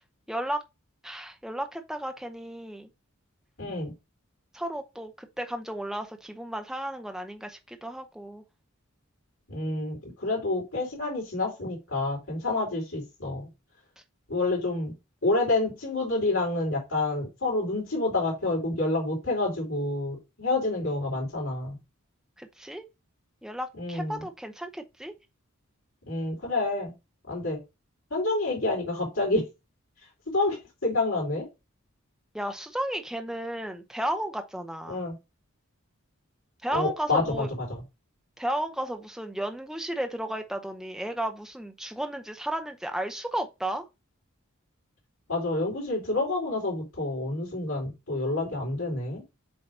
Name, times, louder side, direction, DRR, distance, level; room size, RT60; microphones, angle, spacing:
voice 1, 0.3-0.6 1.0-2.9 4.5-8.4 22.4-22.8 23.4-25.1 32.3-35.0 36.6-37.5 38.4-43.9, right 1 dB, ahead, 0.7 m, -33 dB
voice 2, 3.6-3.9 9.5-13.5 14.3-14.9 15.2-21.8 23.7-24.3 26.1-26.9 27.3-27.6 28.1-29.4 30.3-31.4 34.9-35.2 36.7-37.8 45.3-49.2, left 2 dB, 75° left, 3.9 m, -28 dB
7.9 x 2.9 x 5.3 m
head